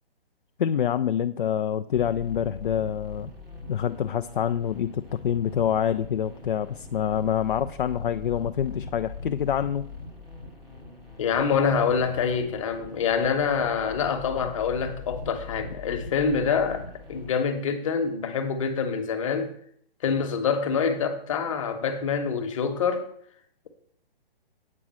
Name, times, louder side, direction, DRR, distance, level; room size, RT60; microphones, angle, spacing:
voice 1, 0.6-3.3 3.7-9.9, left 9 dB, 55° left, 0.5 m, -26 dB
sound 1, 1.9-17.3, left 4 dB, ahead, 0.5 m, -41 dB
voice 2, 11.2-19.5 20.0-23.1, left 6 dB, 30° left, 1.1 m, -26 dB
8.5 x 4.9 x 7.6 m
hypercardioid pair, 165°, 31 cm